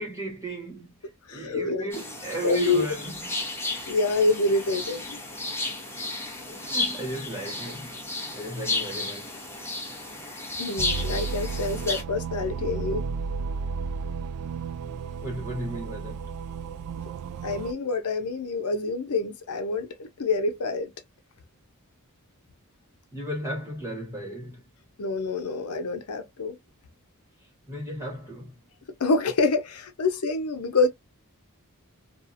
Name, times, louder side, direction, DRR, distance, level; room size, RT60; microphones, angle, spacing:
voice 1, 0.0-3.3 6.5-9.5 10.8-10.9 15.2-16.3 23.1-24.7 27.7-28.6, right 1 dB, 15° right, 1.2 m, -35 dB
voice 2, 1.3-1.9 2.4-2.8 3.9-5.2 10.6-13.1 17.4-20.9 25.0-26.6 29.0-30.9, left 3 dB, 85° left, 0.6 m, -26 dB
sound 1, 1.9-12.0, left 2 dB, 10° left, 1.0 m, -33 dB
sound 2, 10.8-17.7, right 5 dB, 90° right, 0.3 m, -33 dB
2.8 x 2.4 x 2.5 m
head